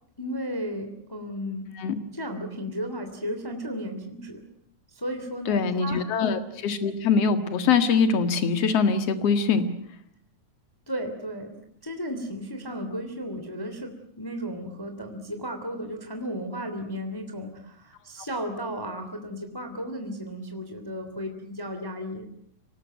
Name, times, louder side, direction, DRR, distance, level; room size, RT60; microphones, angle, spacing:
voice 1, 0.2-1.7 2.1-4.4 4.9-6.1 10.9-11.6 11.8-22.3, equal, 10° left, 5 dB, 2.5 m, -34 dB
voice 2, 5.5-9.7, left 5 dB, 55° left, 9 dB, 2.8 m, -23 dB
25.5 x 19.0 x 9.3 m, 0.70 s
omnidirectional pair, 3.5 m